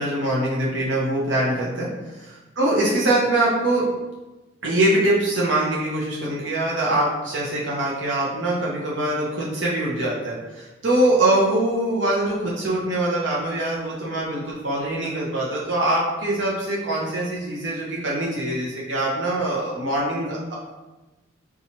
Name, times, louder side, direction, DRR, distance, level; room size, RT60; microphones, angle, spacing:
voice 1, 0.0-1.9 2.6-3.9 4.6-20.5, right 1 dB, 75° right, -5 dB, 0.7 m, -23 dB
4.2 x 2.4 x 2.9 m, 1.1 s
head